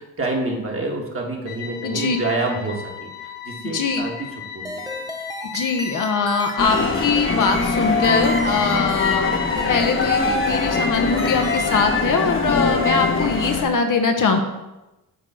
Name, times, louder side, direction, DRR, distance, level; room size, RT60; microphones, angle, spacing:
voice 1, 0.0-5.1, right 2 dB, 30° right, 0 dB, 1.8 m, -28 dB
sound 1, 1.5-11.7, left 8 dB, 90° left, 0.8 m, -37 dB
voice 2, 1.8-2.2 3.6-4.0 5.5-14.4, left 4 dB, 50° left, 5 dB, 1.0 m, -22 dB
sound 2, 4.6-11.9, right 1 dB, 10° right, 0.8 m, -35 dB
sound 3, 6.6-13.6, left 4 dB, 30° left, 1.2 m, -22 dB
6.6 x 3.7 x 6.1 m, 1.0 s
supercardioid pair, 65°, 40 cm